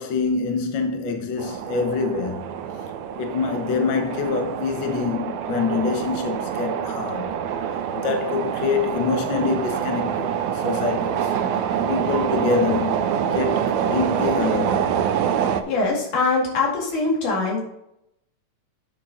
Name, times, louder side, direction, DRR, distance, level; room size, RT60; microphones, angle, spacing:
voice 1, 0.0-2.4 3.1-7.3 7.9-11.3 11.9-14.9, left 4 dB, 60° left, 1.2 m, -25 dB
sound 1, 1.4-15.6, right 8 dB, 80° right, 1.7 m, -26 dB
voice 2, 15.7-17.6, left 3 dB, 80° left, 3.7 m, -22 dB
8.5 x 6.5 x 3.8 m
omnidirectional pair, 3.5 m